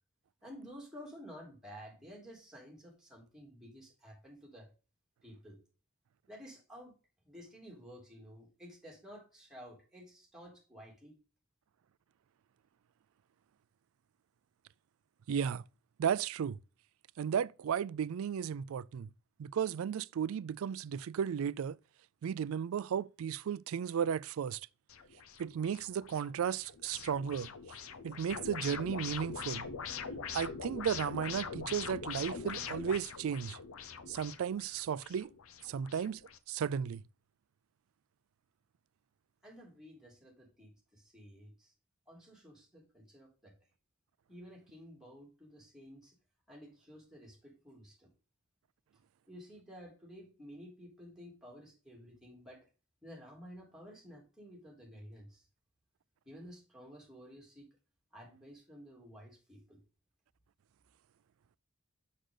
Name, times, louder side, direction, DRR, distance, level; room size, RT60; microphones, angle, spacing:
voice 1, 0.4-4.7 5.2-5.6 6.3-7.0 7.2-11.2 39.4-41.7 42.1-43.5 44.3-46.1 46.5-48.1 49.3-52.7 53.0-55.5 56.2-57.7 58.1-59.8, equal, ahead, 3.0 m, -52 dB
voice 2, 15.3-15.6 16.0-16.6 17.2-19.1 19.4-21.8 22.2-24.6 25.4-27.5 28.0-29.7 30.3-33.6 34.1-35.3 35.6-36.2 36.5-37.0, right 8 dB, 80° right, 0.3 m, -34 dB
sound 1, 24.9-36.4, left 6 dB, 80° left, 0.7 m, -43 dB
6.5 x 6.4 x 3.8 m
head